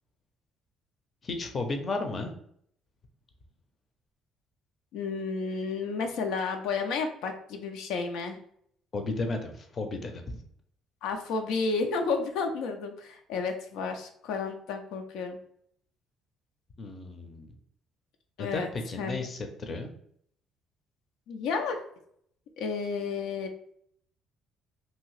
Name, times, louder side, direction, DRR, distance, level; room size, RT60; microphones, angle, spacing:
voice 1, 1.2-2.3 8.9-10.2 16.8-17.5 18.4-19.9, left 3 dB, 35° left, 5 dB, 0.5 m, -33 dB
voice 2, 4.9-8.4 11.0-15.4 18.4-18.7 19.0-19.3 21.3-21.8 22.6-23.5, left 4 dB, 85° left, 5 dB, 0.4 m, -31 dB
2.7 x 2.7 x 3.1 m, 0.67 s
cardioid pair, 130°, 0 cm